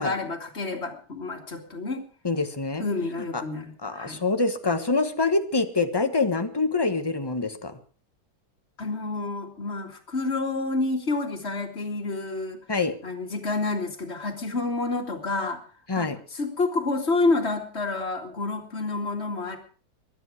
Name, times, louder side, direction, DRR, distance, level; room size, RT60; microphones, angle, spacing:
voice 1, 0.0-2.0 2.8-4.2 8.8-12.6 13.0-15.6 16.0-19.6, left 3 dB, 40° left, 3 dB, 2.6 m, -29 dB
voice 2, 2.2-2.8 3.3-3.4 3.8-7.8 12.7-12.9 15.9-16.2, left 3 dB, 15° left, 9 dB, 1.1 m, -25 dB
22.5 x 9.8 x 4.8 m, 0.40 s
omnidirectional pair, 1.8 m